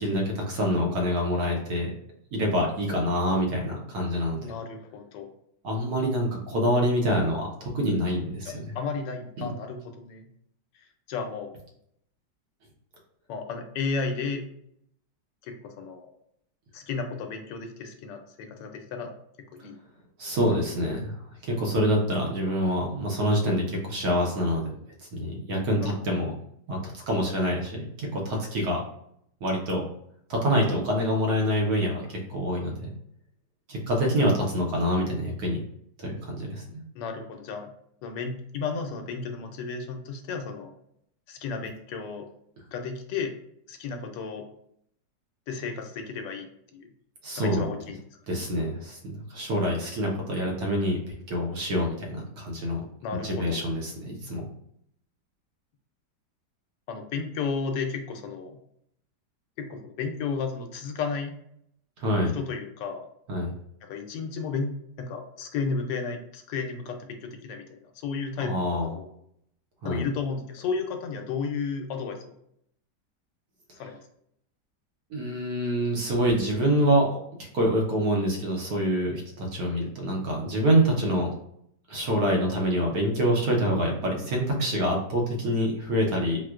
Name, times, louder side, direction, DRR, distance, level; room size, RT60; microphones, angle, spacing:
voice 1, 0.0-1.9 2.3-4.6 5.6-8.5 9.4-9.5 20.2-24.7 25.1-26.3 26.7-28.8 29.4-29.8 30.3-32.9 33.7-35.6 36.0-36.6 47.2-47.7 48.3-52.8 53.2-54.5 62.0-62.3 63.3-63.5 68.4-68.9 69.8-70.0 75.1-81.3 81.9-86.4, equal, 65° right, -1 dB, 1.1 m, -26 dB
voice 2, 4.3-5.3 8.4-10.3 11.1-11.5 13.3-14.4 15.4-16.1 16.7-19.1 19.5-19.8 20.5-20.6 25.8-26.0 36.9-37.7 38.0-40.7 41.3-42.3 42.7-43.3 43.7-44.5 45.5-46.5 46.7-46.9 47.4-48.0 53.0-53.6 56.9-58.6 59.6-61.3 62.3-63.1 63.8-64.7 65.0-69.1 69.8-72.2 73.8-74.0, left 5 dB, 80° left, 4 dB, 1.2 m, -33 dB
4.4 x 2.1 x 2.3 m, 0.72 s
omnidirectional pair, 1.9 m